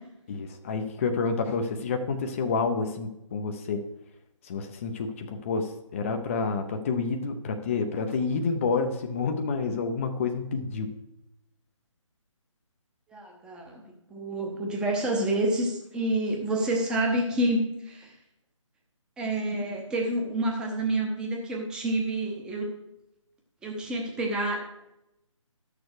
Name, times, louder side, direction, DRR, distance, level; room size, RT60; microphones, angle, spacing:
voice 1, 0.3-3.8 4.4-10.9, left 4 dB, 25° left, 5 dB, 0.6 m, -29 dB
voice 2, 13.1-13.8 14.1-18.1 19.2-22.7 23.6-24.6, right 1 dB, 5° right, 1 dB, 0.9 m, -28 dB
12.0 x 6.6 x 4.8 m, 0.86 s
figure-of-eight pair, 150°, 17 cm